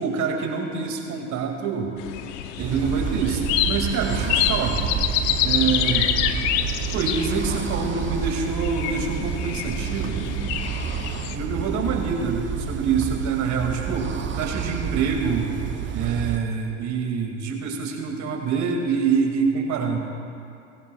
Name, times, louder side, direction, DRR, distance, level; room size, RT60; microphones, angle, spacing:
voice 1, 0.0-2.0 2.6-4.8 5.4-6.1 6.9-10.4 11.3-15.5 15.9-20.0, right 5 dB, 45° right, 2 dB, 2.4 m, -26 dB
sound 1, 2.0-11.4, left 11 dB, 60° left, 0.8 m, -27 dB
sound 2, 2.6-16.4, right 8 dB, 30° right, 0.8 m, -29 dB
19.0 x 16.5 x 2.4 m, 2.6 s
hypercardioid pair, 85°, 38 cm